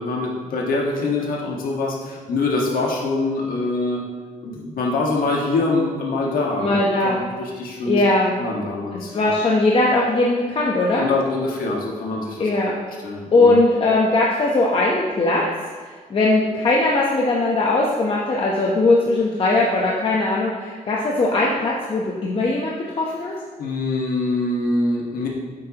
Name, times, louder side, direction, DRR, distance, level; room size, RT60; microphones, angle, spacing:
voice 1, 0.0-4.0 4.4-8.0 8.4-9.3 11.0-12.6 13.0-13.5 23.6-25.3, left 3 dB, 90° left, -2 dB, 1.6 m, -24 dB
voice 2, 6.6-7.2 7.8-8.3 8.9-11.1 12.4-12.7 13.3-15.4 15.8-23.3, left 2 dB, 40° left, -3 dB, 0.9 m, -19 dB
9.3 x 8.0 x 2.9 m, 1.5 s
wide cardioid pair, 145°, 14 cm